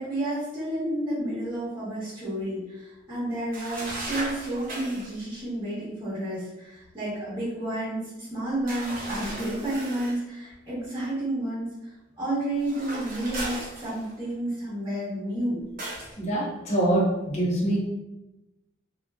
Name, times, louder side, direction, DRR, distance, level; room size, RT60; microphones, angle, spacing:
voice 1, 0.0-11.7 12.2-15.6, right 1 dB, 15° right, -12 dB, 1.0 m, -31 dB
sound 1, 3.5-5.1 8.7-10.2 12.6-14.3 15.8-16.1, right 1 dB, 45° right, 0.7 m, -36 dB
voice 2, 16.2-17.8, right 1 dB, 35° left, -4 dB, 0.7 m, -24 dB
2.5 x 2.3 x 2.2 m, 0.95 s
head